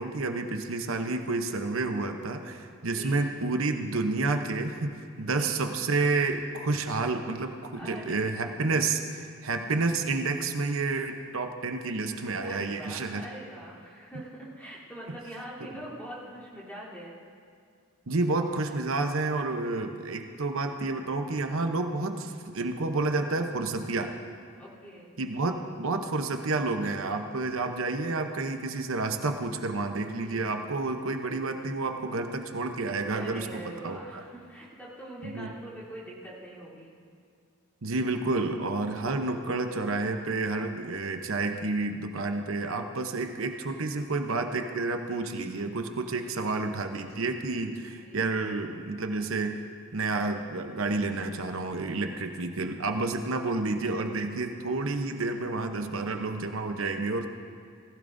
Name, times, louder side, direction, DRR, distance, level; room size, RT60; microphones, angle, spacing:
voice 1, 0.0-13.2 15.6-15.7 18.1-24.1 25.2-34.2 35.2-35.5 37.8-49.6 49.9-57.2, right 3 dB, 75° right, 5 dB, 0.8 m, -30 dB
voice 2, 2.8-3.2 5.2-5.5 7.7-8.2 12.4-17.1 24.6-25.1 30.2-30.4 33.1-37.0 42.4-42.9 46.2-46.5 47.9-48.3, right 1 dB, 10° left, -9 dB, 3.4 m, -44 dB
19.0 x 15.5 x 2.7 m, 2.2 s
head